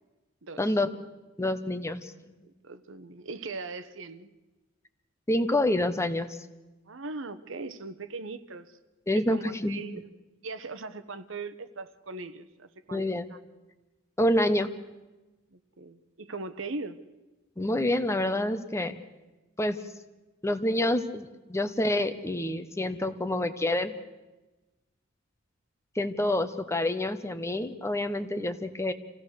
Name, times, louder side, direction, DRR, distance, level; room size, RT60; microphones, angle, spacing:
voice 1, 0.6-0.9 1.4-2.1 5.3-6.3 9.1-9.8 12.9-13.3 14.2-14.7 17.6-19.0 19.6-19.8 20.4-23.9 26.0-28.9, left 1 dB, 15° left, 10 dB, 0.9 m, -27 dB
voice 2, 2.6-4.3 6.9-8.7 9.1-10.1 10.4-13.0 13.3-13.4 15.5-17.0, right 3 dB, 70° right, 11 dB, 1.1 m, -39 dB
27.0 x 16.5 x 6.6 m, 1.1 s
head